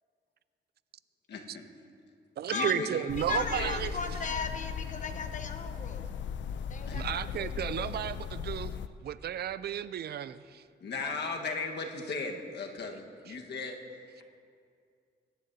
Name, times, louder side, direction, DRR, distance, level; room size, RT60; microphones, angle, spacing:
voice 1, 1.3-1.6 2.5-3.7 6.9-7.0 10.8-13.8, left 3 dB, 70° left, 2 dB, 1.4 m, -37 dB
voice 2, 2.4-3.9 6.9-8.7 9.0-10.6, right 10 dB, 60° right, 16 dB, 0.4 m, -33 dB
sound 1, 3.1-8.9, left 7 dB, 85° left, 0.5 m, -38 dB
voice 3, 3.2-6.1 6.7-7.9, left 5 dB, 45° left, 7 dB, 1.0 m, -37 dB
22.0 x 11.5 x 2.7 m, 2.3 s
cardioid pair, 115°, 18 cm